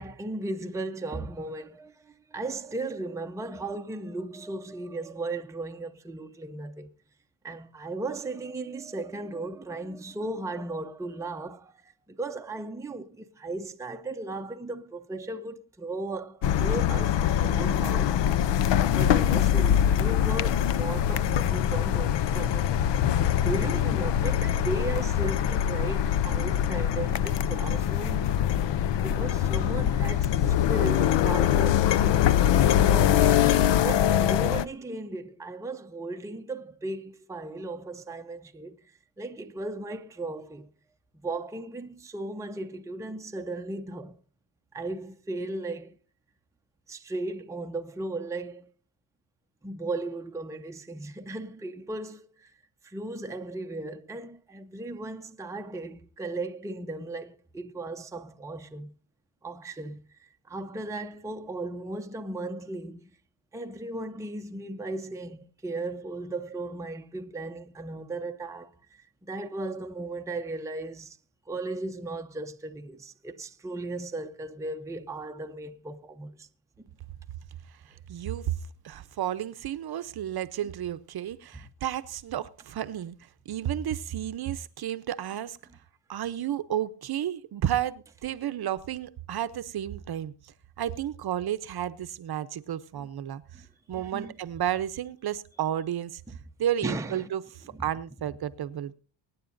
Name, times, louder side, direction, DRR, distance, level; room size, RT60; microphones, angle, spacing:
voice 1, 0.0-6.9 7.4-28.3 28.7-32.4 32.9-33.2 33.8-40.7 41.2-44.2 44.7-46.0 46.9-48.7 49.6-52.5 52.8-58.9 59.4-63.1 63.5-71.2 71.5-76.5 92.9-93.1 93.5-93.7 93.9-94.3 96.3-96.4 96.8-97.3 97.7-97.8, right 2 dB, 5° right, 0.6 m, -36 dB
sound 1, 16.4-34.6, left 10 dB, 65° left, 0.7 m, -23 dB
voice 2, 78.1-78.5 78.8-83.2 83.5-85.6 86.1-90.3 90.8-93.4 93.9-96.2 96.6-98.9, right 11 dB, 50° right, 0.8 m, -32 dB
24.0 x 9.4 x 2.6 m
cardioid pair, 120°, 48 cm